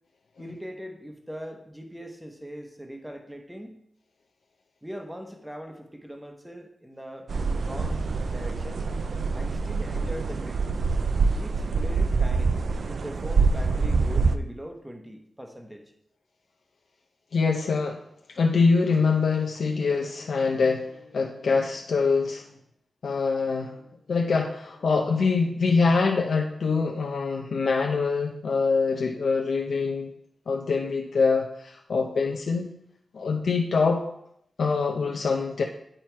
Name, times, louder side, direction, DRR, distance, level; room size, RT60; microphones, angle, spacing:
voice 1, 0.4-3.8 4.8-7.3 7.6-9.0 9.3-10.6 11.4-12.6 12.8-15.9, equal, 5° right, 4 dB, 0.9 m, -41 dB
sound 1, 7.3-14.4, right 4 dB, 60° right, 0.4 m, -25 dB
voice 2, 17.3-18.0 18.3-22.5 23.0-23.8 24.1-30.1 30.5-32.7 33.1-34.0 34.6-35.6, left 4 dB, 75° left, 1 dB, 0.7 m, -24 dB
9.0 x 4.4 x 4.6 m, 0.73 s
wide cardioid pair, 135°, 0 cm